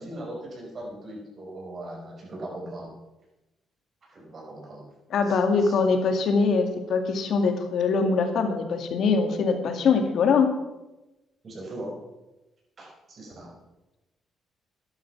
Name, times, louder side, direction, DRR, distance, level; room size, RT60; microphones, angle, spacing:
voice 1, 0.0-2.9 4.0-4.9 5.2-5.7 11.4-12.0 12.8-13.5, right 1 dB, 45° right, -1 dB, 5.9 m, -39 dB
voice 2, 5.1-10.5, left 4 dB, 70° left, 6 dB, 2.1 m, -23 dB
12.5 x 10.5 x 6.0 m, 1.0 s
cardioid pair, 90°, 0 cm